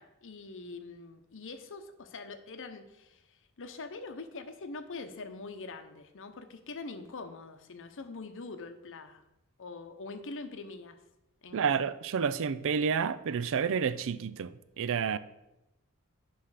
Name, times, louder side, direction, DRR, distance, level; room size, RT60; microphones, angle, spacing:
voice 1, 0.0-9.2 9.6-11.0 11.4-11.7, left 3 dB, 60° left, 0.8 m, -44 dB
voice 2, 11.5-15.2, right 6 dB, 60° right, 0.4 m, -30 dB
9.6 x 5.7 x 4.9 m
head